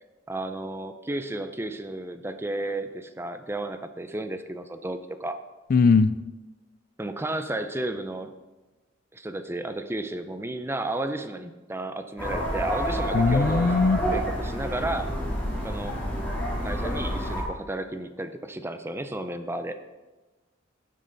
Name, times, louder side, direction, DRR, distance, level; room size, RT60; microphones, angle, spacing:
voice 1, 0.3-5.4 7.0-8.3 9.1-13.7 14.1-15.1 15.6-16.0 16.6-19.8, right 1 dB, 10° right, 9 dB, 0.6 m, -33 dB
voice 2, 5.7-6.1 13.1-14.0, left 4 dB, 45° left, 13 dB, 0.4 m, -20 dB
sound 1, 12.2-17.4, equal, 10° left, 3.1 m, -28 dB
12.0 x 7.6 x 4.0 m, 1.1 s
head